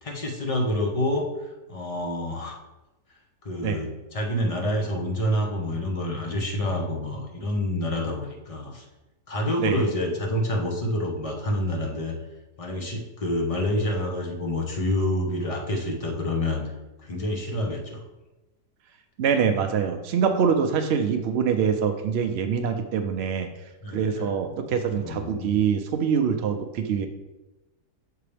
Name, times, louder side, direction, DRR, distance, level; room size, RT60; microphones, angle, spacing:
voice 1, 0.0-2.6 3.4-8.9 9.3-12.2 12.6-16.6 17.0-18.0 23.8-24.3 24.9-25.6, left 1 dB, 40° left, 1 dB, 0.5 m, -28 dB
voice 2, 19.2-23.5 23.9-27.1, right 7 dB, 90° right, 6 dB, 0.5 m, -24 dB
6.7 x 4.6 x 3.3 m, 1.1 s
omnidirectional pair, 1.7 m